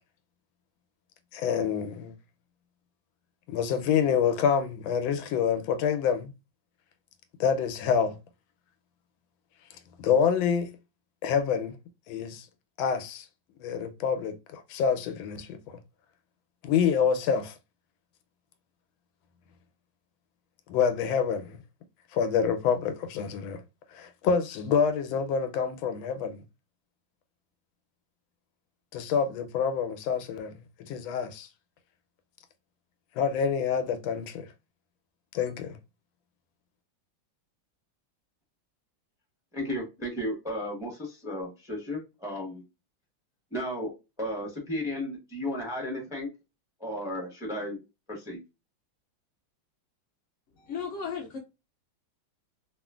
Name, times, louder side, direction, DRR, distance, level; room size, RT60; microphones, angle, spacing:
voice 1, 1.3-2.1 3.5-6.3 7.4-8.2 10.0-10.7 11.2-11.8 12.1-12.5 12.8-13.2 13.6-15.8 16.6-17.5 20.7-21.6 22.1-23.6 23.9-26.4 28.9-30.5 30.9-31.5 33.2-34.5 35.3-35.8, left 7 dB, 85° left, 1.3 m, -27 dB
voice 2, 39.5-42.6 43.5-43.9 44.2-46.3 46.8-47.8 48.1-48.4, left 1 dB, 5° right, 0.6 m, -34 dB
voice 3, 50.6-51.4, left 6 dB, 70° left, 0.7 m, -35 dB
3.0 x 2.4 x 2.2 m
omnidirectional pair, 2.1 m